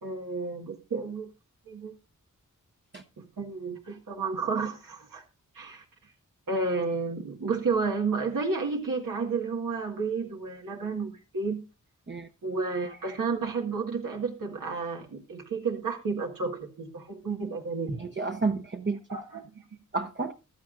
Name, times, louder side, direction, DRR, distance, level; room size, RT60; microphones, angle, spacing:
voice 1, 0.0-1.3 1.7-1.9 3.2-5.2 5.5-5.8 6.5-11.6 12.4-18.0 19.1-19.4, right 4 dB, 90° right, 1 dB, 1.9 m, -31 dB
voice 2, 18.0-19.4 19.9-20.3, right 4 dB, 35° right, 5 dB, 0.9 m, -31 dB
15.5 x 12.0 x 2.5 m, 0.29 s
wide cardioid pair, 80°, 32 cm